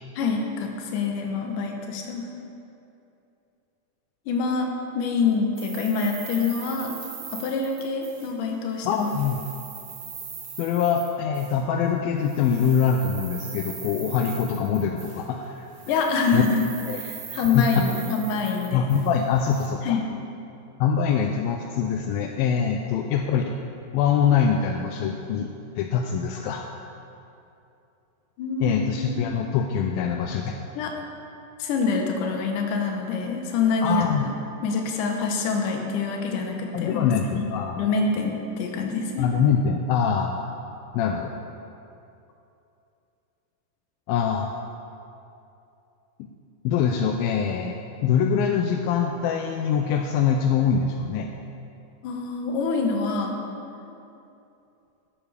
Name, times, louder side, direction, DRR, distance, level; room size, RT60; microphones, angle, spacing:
voice 1, 0.2-2.3 4.3-4.7 4.9-6.9 7.3-9.1 15.9-16.7 16.9-18.9 19.8-20.0 22.7-22.9 28.4-29.3 30.8-30.9 31.6-34.3 34.6-37.1 37.4-37.5 37.8-39.3 52.0-53.4, left 4 dB, 70° left, 2 dB, 2.2 m, -26 dB
sound 1, 5.6-8.5 8.8-11.6 12.2-15.4 15.7-19.7, right 6 dB, 60° right, 2.6 m, -40 dB
voice 2, 8.9-9.4 10.6-15.7 16.3-16.4 16.9-17.0 17.5-17.9 18.7-20.0 20.8-23.5 23.9-26.6 28.6-30.6 33.8-34.3 36.7-37.8 39.2-40.3 40.9-41.3 44.1-44.6 46.6-51.3, left 7 dB, 85° left, 3 dB, 2.2 m, -24 dB
12.5 x 12.0 x 3.4 m, 2.7 s
omnidirectional pair, 4.6 m